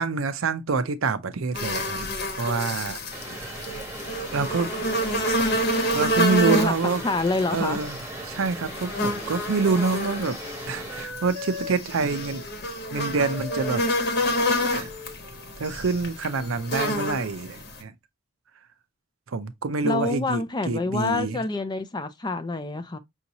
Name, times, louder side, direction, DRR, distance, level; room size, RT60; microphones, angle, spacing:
voice 1, 0.0-2.1 2.4-3.0 3.3-3.7 4.3-4.7 5.9-7.0 7.5-8.0 8.2-10.4 10.7-12.4 12.9-13.8 14.7-14.9 15.6-17.9 19.3-21.4, right 4 dB, 70° right, 0.5 m, -26 dB
sound 1, 1.5-17.8, equal, 50° left, 1.1 m, -29 dB
Vehicle, 3.1-11.0, right 2 dB, 10° right, 1.0 m, -39 dB
voice 2, 7.0-7.8 19.8-23.0, left 2 dB, 20° left, 0.4 m, -26 dB
Wind instrument woodwind instrument, 9.0-16.7, left 4 dB, 85° left, 1.7 m, -42 dB
5.6 x 2.7 x 2.8 m
head